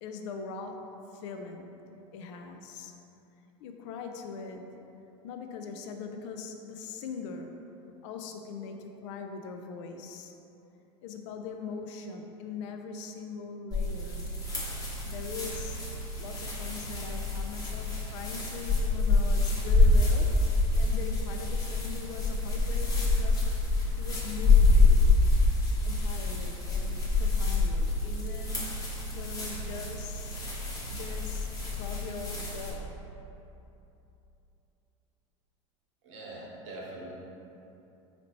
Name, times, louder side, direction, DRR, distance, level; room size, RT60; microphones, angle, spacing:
voice 1, 0.0-1.7 2.1-2.9 3.6-4.7 5.2-7.6 8.0-10.3 11.0-14.2 15.1-15.8 16.2-20.4 20.8-23.5 24.0-25.1 25.8-28.7 29.1-30.4 30.9-32.9, left 5 dB, 75° left, 5 dB, 0.4 m, -41 dB
sound 1, 13.7-32.7, left 3 dB, 25° left, 0.9 m, -27 dB
voice 2, 36.0-37.1, right 2 dB, 80° right, -4 dB, 0.9 m, -42 dB
4.0 x 2.8 x 3.0 m, 2.9 s
supercardioid pair, 100°, 16 cm